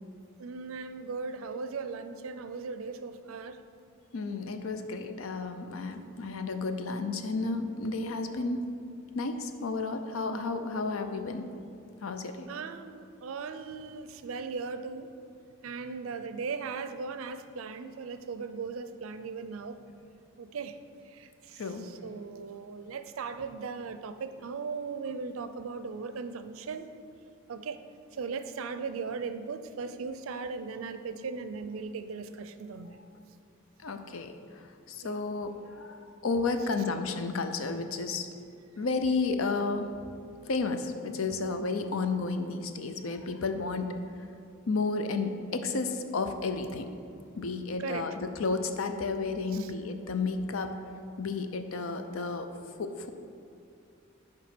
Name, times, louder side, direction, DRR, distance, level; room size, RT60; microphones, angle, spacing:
voice 1, 0.4-3.6 12.5-15.1 15.6-19.8 20.4-20.8 21.1-26.9 27.5-27.8 28.2-33.0 35.0-35.1 47.8-48.2 49.5-49.7, right 5 dB, 85° right, 10 dB, 0.4 m, -38 dB
voice 2, 4.1-8.6 9.1-11.4 12.0-12.5 21.6-21.9 33.8-34.3 34.9-38.3 38.8-39.9 40.5-44.0 44.7-46.9 47.4-50.7 51.2-52.5 52.8-53.1, left 3 dB, 90° left, 8 dB, 0.6 m, -32 dB
9.3 x 3.2 x 6.0 m, 2.6 s
head